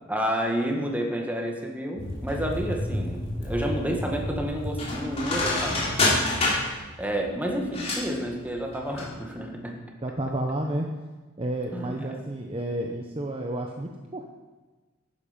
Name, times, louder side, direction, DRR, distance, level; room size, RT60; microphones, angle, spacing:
voice 1, 0.1-6.2 6.6-9.8 11.7-12.2, equal, 10° right, 1 dB, 1.6 m, -30 dB
sound 1, 2.0-9.1 9.4-9.5, left 2 dB, 30° left, 3.4 m, -28 dB
voice 2, 10.0-10.9 11.4-14.3, right 1 dB, 30° right, 1 dB, 0.9 m, -31 dB
12.5 x 9.8 x 5.2 m, 1.2 s
head